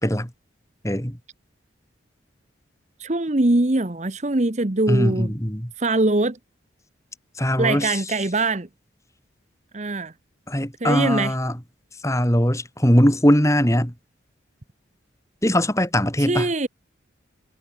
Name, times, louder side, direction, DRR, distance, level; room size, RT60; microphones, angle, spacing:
voice 1, 0.8-1.2 4.9-5.7 7.4-8.0 10.5-11.6 12.0-13.9 15.4-16.5, equal, 15° left, 6.2 m, -20 dB
voice 2, 3.0-5.3 5.8-6.4 7.6-8.7 9.7-10.1 10.8-11.3 16.2-16.7, right 2 dB, 35° right, 1.0 m, -22 dB
head